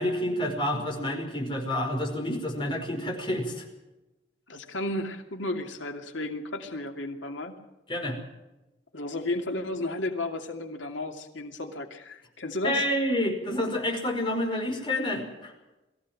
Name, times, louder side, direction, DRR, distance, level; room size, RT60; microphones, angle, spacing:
voice 1, 0.0-3.7 7.9-8.2 12.6-15.5, left 1 dB, 25° left, 2 dB, 5.2 m, -29 dB
voice 2, 4.5-7.6 8.9-12.9, left 2 dB, 90° left, 4 dB, 2.6 m, -33 dB
22.5 x 15.5 x 7.7 m, 1.0 s
head